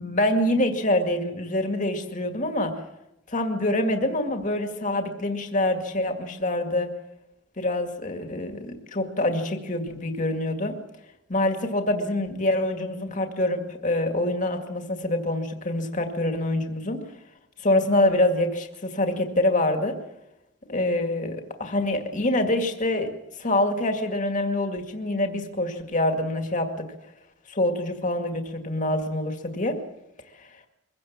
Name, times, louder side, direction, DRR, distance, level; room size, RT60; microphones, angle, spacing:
voice 1, 0.0-2.7 3.3-6.9 7.6-10.8 11.3-17.0 17.6-20.0 20.7-23.1 23.4-26.9 27.5-29.8 30.4-30.5, left 1 dB, 40° left, 5 dB, 2.1 m, -25 dB
23.0 x 16.5 x 7.3 m, 0.91 s
head